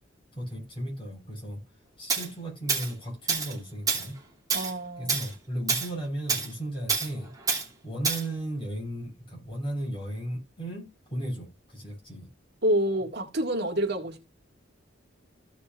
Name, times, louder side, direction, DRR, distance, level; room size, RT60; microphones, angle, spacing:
voice 1, 0.3-1.6 2.0-4.1 5.0-7.3 7.8-10.8 11.1-12.3, right 1 dB, 30° left, 6.5 m, -35 dB
Tools, 2.1-2.3 2.7-2.9 3.3-3.5 3.9-4.1 4.5-4.7 5.1-5.3 5.7-5.9 6.3-6.5 6.9-7.1 7.5-7.6 8.0-8.2, right 5 dB, 20° right, 2.9 m, -27 dB
voice 2, 4.5-5.2 12.6-14.3, right 1 dB, 60° right, 2.1 m, -28 dB
16.0 x 5.8 x 2.5 m
head